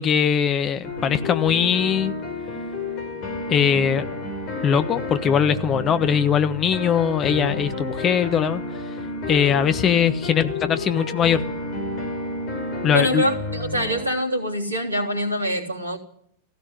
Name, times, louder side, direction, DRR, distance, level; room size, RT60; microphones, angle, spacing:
voice 1, 0.0-2.1 3.5-4.0 4.6-8.6 9.3-11.4 12.8-13.2, left 8 dB, 30° left, 1.4 m, -21 dB
sound 1, 0.8-14.1, left 2 dB, 45° left, 5.6 m, -31 dB
voice 2, 12.9-16.0, equal, 80° right, 3.3 m, -24 dB
16.5 x 16.0 x 9.9 m
figure-of-eight pair, 90°, 0 cm